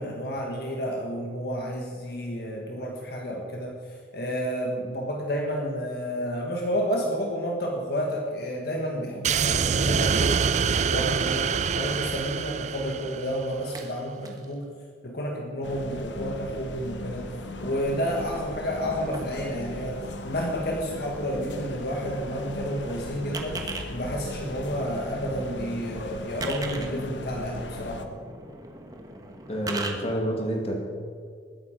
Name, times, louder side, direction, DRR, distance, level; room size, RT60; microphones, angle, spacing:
voice 1, 0.0-10.4 10.9-14.7 15.0-17.3 17.6-28.2, equal, 60° left, 0 dB, 1.7 m, -30 dB
sound 1, 9.2-13.6, right 6 dB, 40° right, 0.4 m, -25 dB
sound 2, 13.3-14.6 15.2-15.3 16.3-19.5 21.1-21.2 21.5-23.8 24.6-29.9, right 2 dB, 20° right, 1.3 m, -41 dB
sound 3, 15.6-28.1, left 2 dB, 85° left, 1.0 m, -38 dB
voice 2, 29.5-30.8, right 1 dB, 35° left, 1 dB, 2.4 m, -28 dB
20.5 x 9.5 x 5.1 m, 2.1 s
head